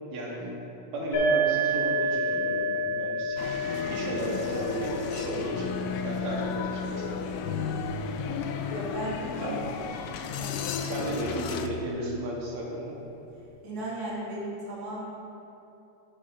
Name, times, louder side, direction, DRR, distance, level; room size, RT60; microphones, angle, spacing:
voice 1, 0.1-0.5 0.9-3.4 3.9-5.7 6.0-7.1 9.4-9.6 10.8-13.0, right 1 dB, 80° right, -3 dB, 2.5 m, -34 dB
sound 1, 1.1-8.6, right 1 dB, 55° left, 3.1 m, -31 dB
sound 2, 3.4-11.7, left 6 dB, 80° left, 1.4 m, -33 dB
voice 2, 8.7-9.6 10.4-11.0 13.6-15.0, right 1 dB, 35° right, -7 dB, 2.2 m, -36 dB
11.0 x 9.4 x 2.5 m, 3.0 s
omnidirectional pair, 3.3 m